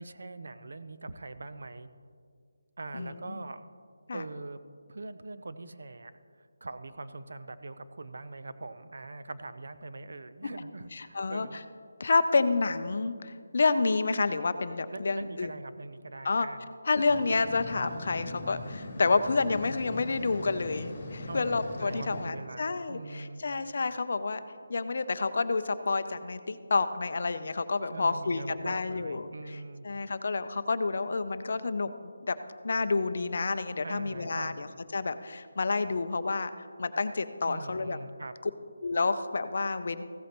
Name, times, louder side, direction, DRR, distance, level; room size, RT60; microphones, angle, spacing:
voice 1, 0.0-1.9 2.8-3.6 4.1-4.6 4.9-6.1 6.4-11.6 14.9-16.7 21.2-23.4 27.9-29.9 33.8-34.6 37.4-38.3, right 2 dB, 65° right, 11 dB, 0.6 m, -42 dB
voice 2, 2.9-3.4 4.1-4.2 10.9-11.5 12.0-15.5 16.2-16.5 16.9-24.4 24.7-29.6 29.8-32.4 32.6-34.7 34.9-36.5 36.8-38.0 38.8-40.0, left 3 dB, 50° left, 11 dB, 0.5 m, -29 dB
sound 1, 17.1-22.3, left 2 dB, 30° left, 1.9 m, -40 dB
15.5 x 8.3 x 3.0 m, 2.1 s
figure-of-eight pair, 175°, 0 cm